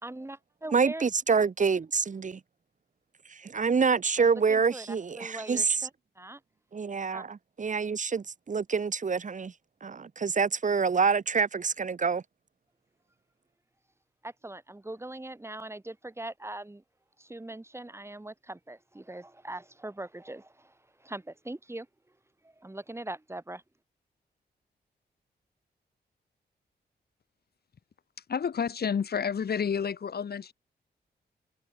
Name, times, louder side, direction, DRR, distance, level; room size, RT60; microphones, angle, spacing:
voice 1, 0.0-1.0 4.2-5.9 6.2-6.4 7.1-7.2 14.2-16.8 17.2-21.9 22.4-23.6, right 1 dB, 15° right, 4.6 m, -41 dB
voice 2, 0.7-2.4 3.3-5.9 6.7-9.5 9.8-12.2, right 5 dB, 45° right, 2.1 m, -27 dB
voice 3, 28.3-30.5, left 7 dB, 65° left, 3.4 m, -30 dB
cardioid pair, 90°, 18 cm